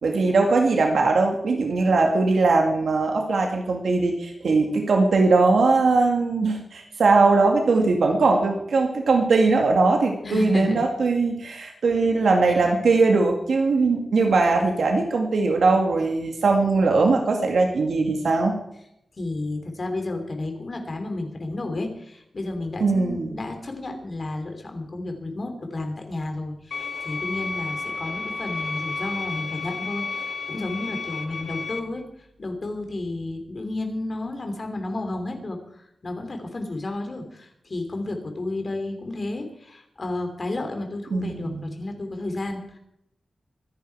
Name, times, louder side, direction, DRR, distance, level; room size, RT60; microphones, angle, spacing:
voice 1, 0.0-18.6 22.8-23.4 41.1-41.7, right 3 dB, 75° right, 2 dB, 2.1 m, -20 dB
voice 2, 10.2-10.8 19.2-32.0 32.4-42.8, left 2 dB, 35° left, 4 dB, 3.1 m, -32 dB
sound 1, 26.7-31.8, left 4 dB, 65° left, 1.7 m, -32 dB
24.0 x 10.5 x 4.7 m, 0.77 s
wide cardioid pair, 170°, 0 cm